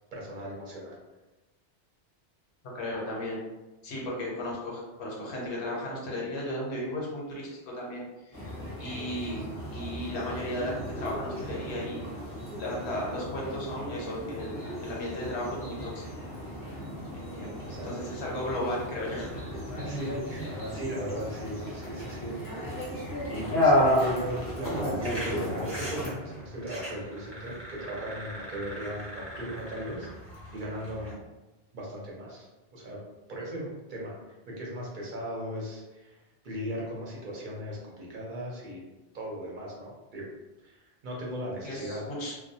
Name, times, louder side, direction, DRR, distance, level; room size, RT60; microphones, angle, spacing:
voice 1, 0.1-1.0 16.7-16.8 17.4-18.1 19.8-22.4 23.3-30.1 30.5-31.2 31.7-33.0 33.3-34.2 34.5-36.2 36.4-38.8 39.1-40.3 40.6-42.0, equal, 50° right, -3 dB, 0.7 m, -37 dB
voice 2, 2.7-3.4 3.8-9.4 9.7-12.0 12.6-16.0 17.1-19.4 41.6-42.3, left 1 dB, 75° left, -3 dB, 1.0 m, -35 dB
sound 1, 8.3-26.1, left 1 dB, 20° left, 0.6 m, -33 dB
sound 2, 25.0-31.1, right 1 dB, 15° right, 0.7 m, -42 dB
2.2 x 2.2 x 2.7 m, 1.1 s
omnidirectional pair, 1.2 m